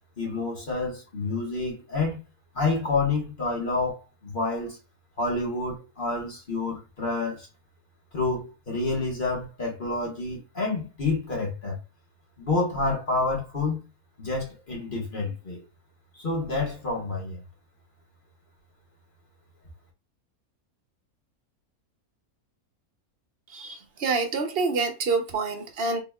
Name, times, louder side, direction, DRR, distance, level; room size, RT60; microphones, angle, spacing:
voice 1, 0.2-2.2 2.5-4.8 5.2-7.5 8.1-11.8 12.4-13.8 14.2-15.6 16.1-17.4, left 3 dB, 35° left, 1.4 m, -28 dB
voice 2, 23.5-26.0, right 4 dB, 50° right, 0.9 m, -27 dB
3.9 x 3.5 x 2.3 m
omnidirectional pair, 1.5 m